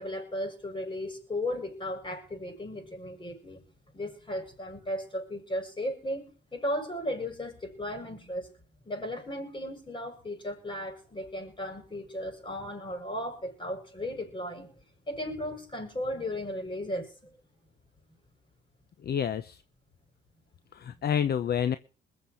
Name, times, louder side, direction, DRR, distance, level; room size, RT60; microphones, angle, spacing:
voice 1, 0.0-3.6 3.9-8.5 8.9-14.7 15.1-17.3, left 1 dB, 25° left, 5 dB, 7.3 m, -35 dB
voice 2, 19.0-19.6 20.7-21.8, left 8 dB, 55° left, 13 dB, 0.9 m, -28 dB
21.5 x 7.5 x 6.3 m, 0.39 s
cardioid pair, 90°, 20 cm